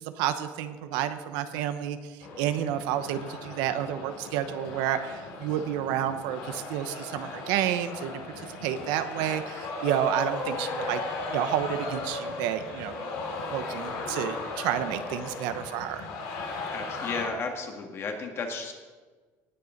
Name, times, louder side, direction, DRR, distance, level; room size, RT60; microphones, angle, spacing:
voice 1, 0.0-2.0 2.4-11.0 11.3-13.2 13.5-16.1, right 10 dB, 80° right, 10 dB, 0.9 m, -30 dB
sound 1, 2.2-17.3, left 3 dB, 75° left, 3.6 m, -36 dB
voice 2, 16.7-18.7, left 4 dB, 35° left, 3 dB, 1.9 m, -33 dB
18.5 x 6.9 x 5.2 m, 1.4 s
cardioid pair, 140°, 7 cm